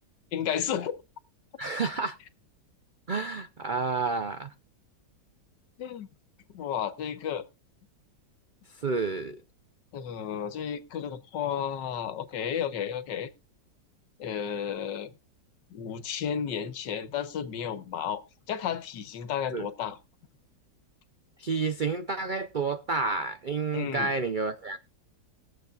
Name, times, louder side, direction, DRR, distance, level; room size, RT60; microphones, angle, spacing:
voice 1, 0.3-1.0 5.8-6.1 6.5-7.4 9.9-13.3 14.2-15.1 15.7-18.2 18.5-20.0 23.7-24.1, left 8 dB, 80° left, 1.6 m, -32 dB
voice 2, 1.6-2.2 3.1-4.5 8.8-9.4 19.5-19.7 21.4-24.8, right 4 dB, 85° right, 0.4 m, -30 dB
21.0 x 7.5 x 2.4 m
omnidirectional pair, 1.9 m